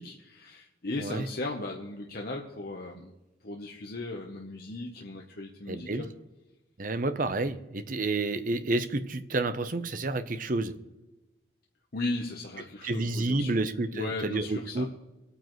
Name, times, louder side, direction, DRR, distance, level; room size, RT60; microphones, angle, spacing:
voice 1, 0.0-3.1 3.4-6.1 11.9-13.6 13.9-14.9, left 2 dB, 50° left, 0 dB, 1.0 m, -37 dB
voice 2, 5.7-6.0 6.8-10.7 12.8-14.9, right 2 dB, 45° right, 10 dB, 0.7 m, -30 dB
23.5 x 9.1 x 3.1 m, 1.0 s
head